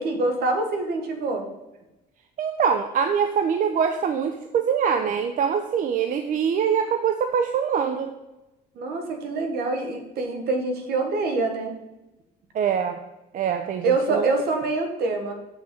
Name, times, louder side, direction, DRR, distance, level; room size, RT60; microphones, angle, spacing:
voice 1, 0.0-1.5 8.7-11.8 13.8-15.3, right 3 dB, 70° right, 5 dB, 1.5 m, -25 dB
voice 2, 2.4-8.1 12.5-13.0 13.3-14.3, right 7 dB, 50° right, 7 dB, 0.6 m, -24 dB
7.0 x 6.5 x 4.3 m, 0.97 s
cardioid pair, 110°, 17 cm